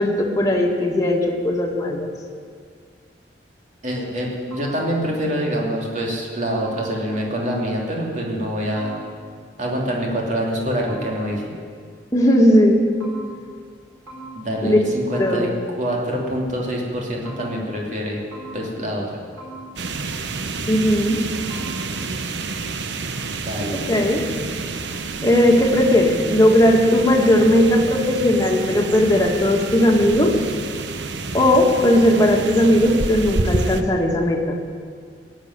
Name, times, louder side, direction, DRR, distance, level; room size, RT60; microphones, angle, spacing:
voice 1, 0.0-2.1 12.1-12.8 14.6-14.8 15.2-15.5 20.7-21.2 22.0-22.1 23.8-24.2 25.2-30.3 31.3-34.6, left 1 dB, 20° left, 0 dB, 2.0 m, -17 dB
voice 2, 3.8-8.9 9.6-11.5 14.3-15.5 15.8-18.2 18.5-19.2 23.4-23.8, equal, 45° right, -2 dB, 3.1 m, -25 dB
sound 1, 4.5-5.3 6.6-7.4 8.8-9.5 10.9-11.7 13.0-13.8 14.1-14.9 15.1-15.9 17.2-18.0 18.3-19.1 19.4-20.2 21.5-22.1, right 1 dB, 15° right, 5.0 m, -41 dB
sound 2, 19.8-33.8, right 3 dB, 85° right, 0.9 m, -29 dB
17.5 x 7.4 x 9.8 m, 2.1 s
head